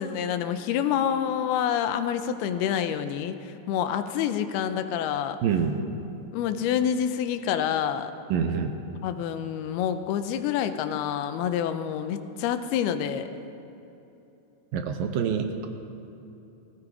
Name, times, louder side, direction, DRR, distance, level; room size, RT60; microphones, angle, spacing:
voice 1, 0.0-3.4 3.7-5.4 6.3-8.1 9.0-13.3, left 9 dB, 90° left, 9 dB, 2.7 m, -27 dB
voice 2, 5.4-5.8 8.3-8.7 14.7-15.7, right 7 dB, 75° right, 7 dB, 2.4 m, -26 dB
18.5 x 16.0 x 4.9 m, 2.9 s
omnidirectional pair, 4.5 m